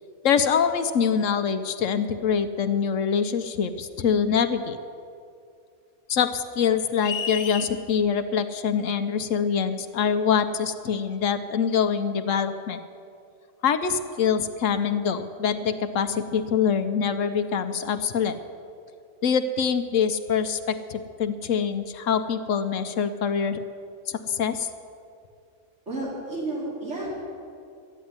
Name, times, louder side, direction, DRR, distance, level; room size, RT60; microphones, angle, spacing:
voice 1, 0.2-4.8 6.1-12.8 13.6-18.4 19.2-23.6 24.1-24.7, left 7 dB, 65° left, 9 dB, 1.0 m, -24 dB
sound 1, 7.0-7.7, left 6 dB, 85° left, 1.5 m, -31 dB
voice 2, 25.9-27.1, right 2 dB, 50° right, -6 dB, 4.4 m, -31 dB
13.0 x 9.3 x 9.5 m, 2.4 s
omnidirectional pair, 1.5 m